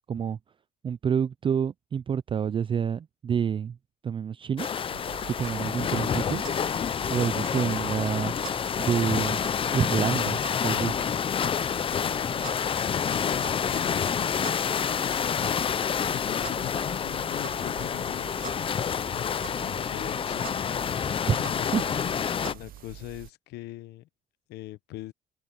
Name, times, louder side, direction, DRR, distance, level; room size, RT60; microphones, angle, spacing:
voice 1, 0.1-0.4 0.8-3.8 4.0-4.7 5.3-6.4 7.1-8.3 8.8-9.4 9.7-11.0 21.3-21.4 21.7-21.8, right 7 dB, 30° right, 0.4 m, -28 dB
sound 1, 4.6-22.5, left 7 dB, 30° left, 0.5 m, -28 dB
sound 2, 4.9-23.3, right 12 dB, 60° right, 0.9 m, -45 dB
voice 2, 13.1-14.5 15.0-15.7 16.1-18.3 19.1-20.6 21.4-22.0 22.5-24.1 24.5-25.1, left 16 dB, 80° left, 0.9 m, -42 dB
cardioid pair, 110°, 17 cm